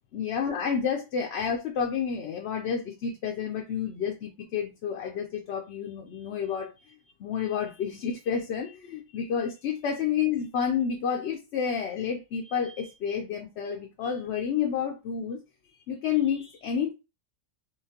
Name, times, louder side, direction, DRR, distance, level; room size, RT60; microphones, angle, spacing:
voice 1, 0.1-6.9 7.2-15.4 15.9-16.9, left 7 dB, 65° left, 0.8 m, -30 dB
3.8 x 3.0 x 2.8 m
omnidirectional pair, 1.4 m